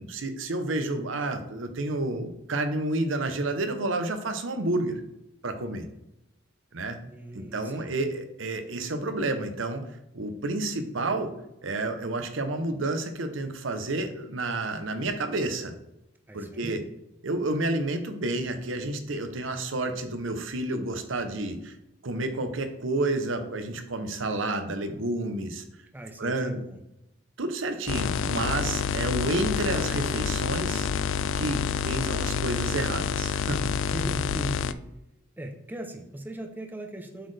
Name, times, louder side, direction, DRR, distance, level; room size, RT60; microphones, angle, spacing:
voice 1, 0.0-5.0 5.4-5.8 6.7-7.0 7.3-9.8 10.1-11.3 11.6-15.7 16.3-16.8 17.2-21.7 22.0-25.6 26.2-26.6 27.4-30.9 31.3-33.7, right 2 dB, 85° right, 8 dB, 0.8 m, -30 dB
voice 2, 7.0-7.9 16.3-16.8 25.9-26.8 33.8-34.8 35.4-37.3, right 1 dB, 10° right, 4 dB, 0.6 m, -38 dB
sound 1, 27.9-34.7, left 7 dB, 80° left, 0.3 m, -28 dB
7.8 x 4.2 x 3.3 m, 0.90 s
head